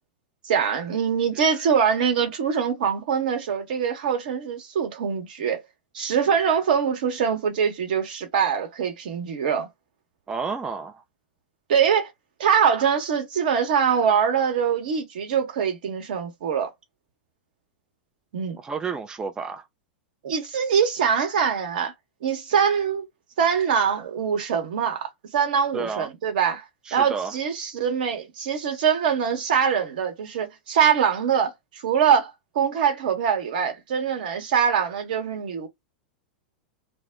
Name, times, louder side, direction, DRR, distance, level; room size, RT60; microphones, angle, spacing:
voice 1, 0.4-5.6 5.9-9.7 11.7-12.1 12.4-16.7 18.3-18.6 20.2-21.9 22.2-23.0 23.4-26.6 26.9-35.7, right 7 dB, 65° right, 1.0 m, -23 dB
voice 2, 10.3-11.0 18.6-19.7 25.7-26.1 26.9-27.3, right 5 dB, 15° right, 0.3 m, -31 dB
2.1 x 2.1 x 3.4 m
hypercardioid pair, 95°, 5 cm